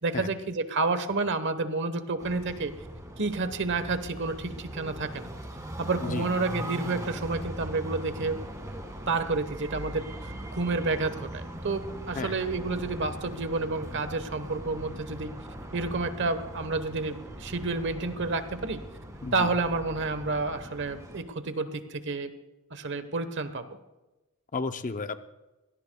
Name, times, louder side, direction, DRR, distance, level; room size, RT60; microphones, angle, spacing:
voice 1, 0.0-2.7 3.2-5.3 5.8-8.4 9.1-15.3 15.7-18.8 19.3-22.3 22.7-23.6, right 3 dB, 55° right, 10 dB, 1.1 m, -30 dB
sound 1, 2.2-21.2, equal, 15° right, 1.9 m, -40 dB
voice 2, 24.5-25.3, left 4 dB, 35° left, 9 dB, 0.7 m, -33 dB
24.0 x 17.5 x 2.3 m, 1.1 s
head